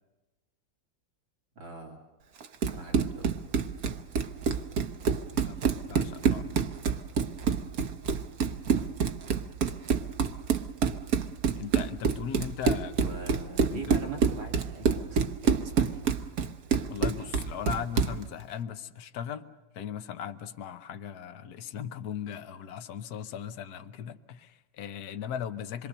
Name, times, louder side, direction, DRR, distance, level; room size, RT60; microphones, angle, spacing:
voice 1, 1.6-2.0 2.6-3.4 13.0-16.0, right 3 dB, 90° right, 1 dB, 3.4 m, -42 dB
Run, 2.4-18.2, right 6 dB, 55° right, 1.2 m, -27 dB
voice 2, 5.9-6.7 11.6-13.2 13.7-13.9 16.9-19.5 19.7-25.9, left 8 dB, 60° left, 9 dB, 1.4 m, -38 dB
27.0 x 23.0 x 6.8 m, 1.1 s
omnidirectional pair, 2.1 m